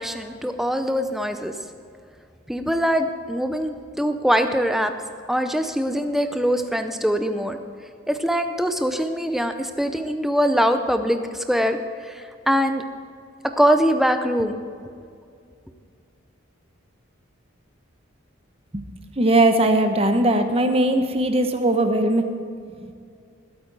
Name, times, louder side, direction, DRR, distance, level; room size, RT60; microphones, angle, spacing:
voice 1, 0.0-1.5 2.5-4.9 5.3-7.6 8.1-12.8 13.6-14.6, equal, ahead, 7 dB, 0.6 m, -23 dB
voice 2, 19.2-22.2, right 1 dB, 30° right, 6 dB, 1.0 m, -19 dB
20.5 x 8.6 x 4.8 m, 2.3 s
head